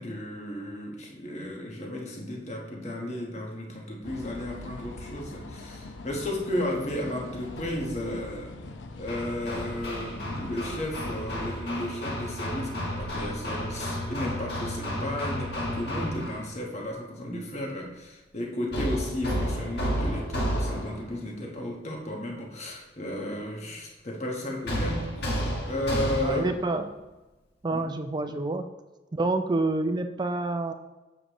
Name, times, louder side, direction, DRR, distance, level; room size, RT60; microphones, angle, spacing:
voice 1, 0.0-8.6 9.0-26.5 27.7-27.8, left 1 dB, 35° left, 0 dB, 1.2 m, -34 dB
sound 1, 4.0-11.6, left 2 dB, 80° left, 0.6 m, -42 dB
Hammer, 9.1-16.5 18.7-21.1 24.7-26.6, equal, 60° left, 1.4 m, -32 dB
voice 2, 26.2-26.9 27.6-28.7 29.1-30.7, right 2 dB, 25° right, 8 dB, 0.4 m, -28 dB
7.4 x 6.5 x 3.0 m, 1.1 s
head